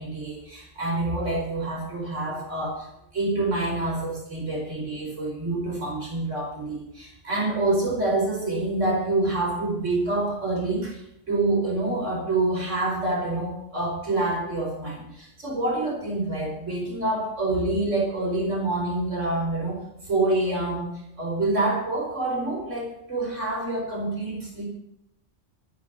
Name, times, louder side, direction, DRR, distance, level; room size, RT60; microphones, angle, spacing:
voice 1, 0.0-24.6, right 2 dB, 80° right, -2 dB, 5.2 m, -27 dB
13.0 x 9.7 x 6.0 m, 0.79 s
omnidirectional pair, 1.3 m